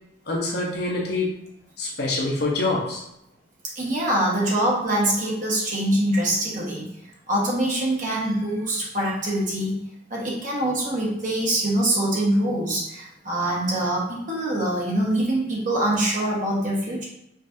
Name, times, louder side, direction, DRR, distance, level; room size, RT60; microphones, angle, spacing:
voice 1, 0.3-1.4 1.8-3.0, left 2 dB, 55° left, -3 dB, 0.9 m, -25 dB
voice 2, 3.7-6.9 7.3-9.8 10.1-17.0, right 1 dB, 45° right, -4 dB, 1.3 m, -24 dB
5.2 x 3.2 x 2.7 m, 0.82 s
head